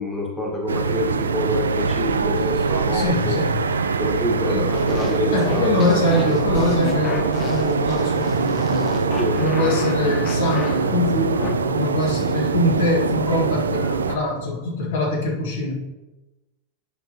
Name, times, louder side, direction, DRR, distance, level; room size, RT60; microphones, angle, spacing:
voice 1, 0.0-3.4 4.0-5.7 6.2-6.4 9.2-9.4, left 1 dB, 5° left, -2 dB, 1.6 m, -26 dB
sound 1, 0.7-14.2, right 5 dB, 70° right, 0.3 m, -23 dB
voice 2, 2.9-3.7 4.4-4.7 5.3-9.0 9.4-15.7, left 2 dB, 55° left, -2 dB, 1.8 m, -23 dB
sound 2, 4.7-11.5, left 5 dB, 30° left, 0.9 m, -33 dB
10.0 x 5.6 x 2.9 m, 1.1 s
figure-of-eight pair, 90°, 0 cm